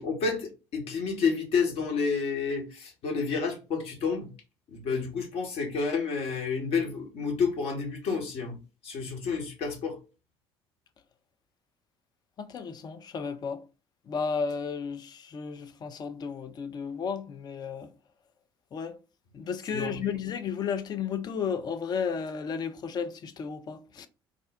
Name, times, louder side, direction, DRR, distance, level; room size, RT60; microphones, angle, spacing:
voice 1, 0.0-4.3 4.7-8.6 8.8-10.0 19.7-20.1, left 5 dB, 50° left, 1.0 m, -30 dB
voice 2, 12.4-13.6 14.1-17.9 18.7-19.0 19.3-24.1, left 6 dB, 35° left, 0.5 m, -33 dB
3.6 x 2.1 x 3.4 m
figure-of-eight pair, 55°, 13 cm